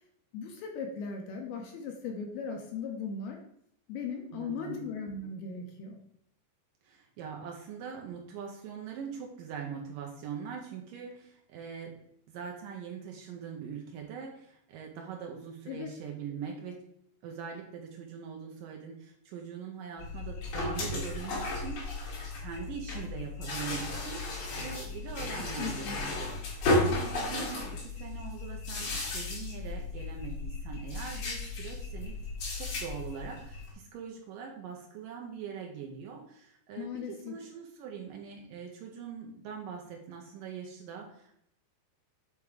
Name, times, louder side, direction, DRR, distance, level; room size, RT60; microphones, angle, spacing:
voice 1, 0.3-3.4 3.9-6.0 15.7-15.9 25.6-26.0 36.8-37.3, left 5 dB, 75° left, 2 dB, 2.5 m, -38 dB
voice 2, 4.3-4.8 6.8-12.0 12.3-16.8 17.2-22.1 22.4-32.2 32.5-41.3, right 7 dB, 80° right, 1 dB, 1.9 m, -42 dB
sound 1, 20.0-33.7, left 2 dB, 55° left, 4.3 m, -34 dB
8.8 x 3.5 x 4.8 m, 0.74 s
omnidirectional pair, 5.0 m